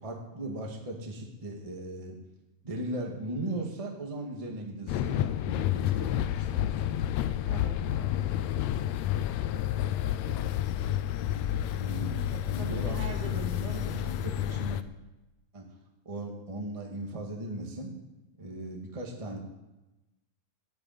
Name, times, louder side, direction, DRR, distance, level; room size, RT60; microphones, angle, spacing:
voice 1, 0.0-2.2 2.6-7.2 11.7-13.0 13.2-14.8 15.5-15.7 16.1-17.9 18.4-19.4, right 1 dB, 15° right, -1 dB, 1.6 m, -38 dB
sound 1, 4.9-14.8, left 12 dB, 80° left, 1.5 m, -30 dB
voice 2, 7.3-8.4 12.3-13.8, right 3 dB, 70° right, 1 dB, 3.8 m, -43 dB
12.5 x 8.2 x 9.2 m, 1.0 s
omnidirectional pair, 3.5 m